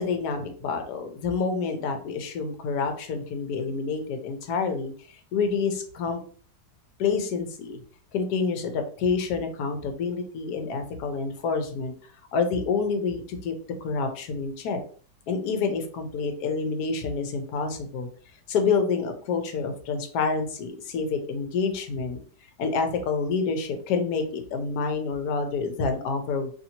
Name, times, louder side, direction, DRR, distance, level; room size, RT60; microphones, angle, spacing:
voice 1, 0.0-6.2 7.0-7.8 8.1-11.9 12.3-13.5 13.8-14.8 15.3-18.1 18.5-22.2 22.6-26.5, left 5 dB, 70° left, 6 dB, 1.0 m, -28 dB
2.8 x 2.6 x 2.7 m, 0.44 s
omnidirectional pair, 2.0 m